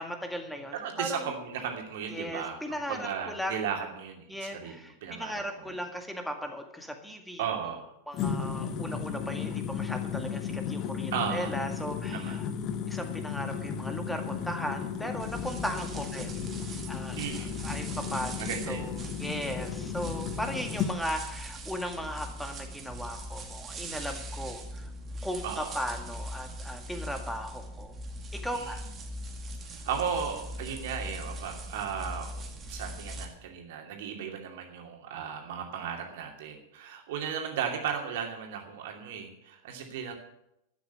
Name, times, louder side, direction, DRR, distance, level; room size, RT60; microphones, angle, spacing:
voice 1, 0.0-1.2 2.1-3.6 4.3-7.4 8.1-12.5 12.9-16.4 16.9-17.2 17.6-24.9 25.2-27.9 28.3-28.8, equal, ahead, 5 dB, 2.0 m, -37 dB
voice 2, 0.7-5.8 7.4-7.9 11.1-11.5 12.1-12.4 17.2-17.5 18.4-18.9 25.4-25.7 28.5-28.8 29.8-32.3 32.7-40.1, right 7 dB, 55° right, 2 dB, 2.7 m, -35 dB
sound 1, 8.1-20.9, left 7 dB, 35° left, 1.2 m, -34 dB
sound 2, 15.2-33.2, right 1 dB, 25° right, 2.2 m, -41 dB
12.0 x 9.2 x 8.1 m, 0.83 s
figure-of-eight pair, 90°, 0 cm